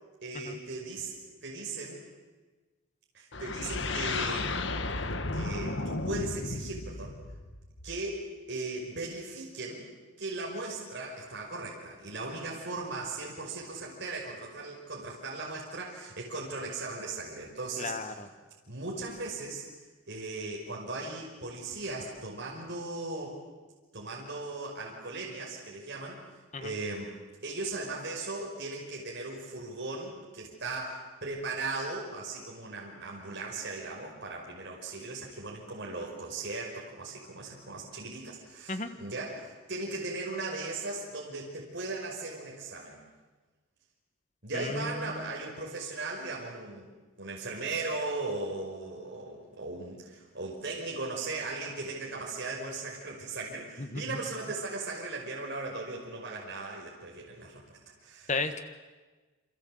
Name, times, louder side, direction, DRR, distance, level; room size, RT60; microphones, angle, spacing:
voice 1, 0.2-2.0 3.1-4.8 5.3-7.2 7.8-9.8 10.2-18.2 18.7-19.6 20.1-23.4 23.9-26.2 26.6-27.1 27.4-43.0 44.4-46.9 47.2-58.3, right 3 dB, 55° right, -2 dB, 5.5 m, -38 dB
sound 1, 3.3-8.2, left 3 dB, 55° left, 1.5 m, -34 dB
voice 2, 17.8-18.3 26.5-26.7 38.7-38.9 44.5-45.2 53.8-54.0 58.3-58.6, left 3 dB, 35° left, 9 dB, 1.5 m, -34 dB
28.5 x 27.0 x 7.9 m, 1.3 s
head